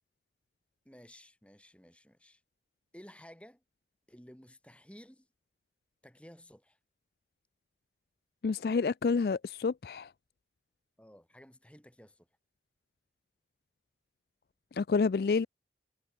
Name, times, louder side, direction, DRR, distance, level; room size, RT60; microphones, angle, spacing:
voice 1, 0.8-2.4 2.9-3.6 4.1-5.3 6.0-6.8 11.0-12.3 15.3-15.5, equal, 5° left, 4.3 m, -54 dB
voice 2, 8.4-10.1 14.8-15.5, left 4 dB, 60° left, 0.4 m, -28 dB
head